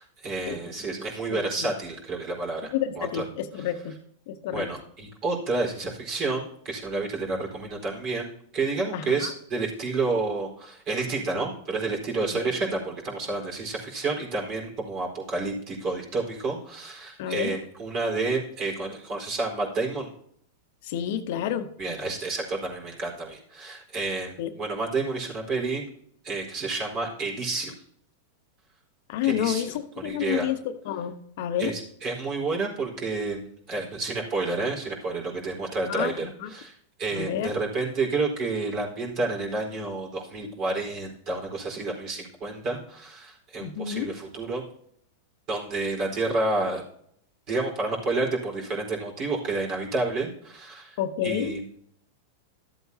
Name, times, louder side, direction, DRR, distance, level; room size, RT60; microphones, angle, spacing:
voice 1, 0.0-3.2 4.5-20.1 21.8-25.8 26.2-27.8 29.2-30.5 31.6-33.4 33.7-36.7 37.0-44.6 45.5-46.8 47.5-51.0 51.2-51.6, right 3 dB, 45° right, -1 dB, 4.2 m, -30 dB
voice 2, 1.3-1.7 2.7-4.0 4.3-4.7 8.9-9.3 12.3-12.4 17.2-17.6 20.8-21.7 24.4-24.5 29.1-30.6 30.8-31.7 35.9-36.5 37.1-37.5 43.6-44.1 51.0-51.5, left 10 dB, 60° left, 9 dB, 0.9 m, -29 dB
13.0 x 8.0 x 2.8 m, 0.67 s
hypercardioid pair, 115°, 0 cm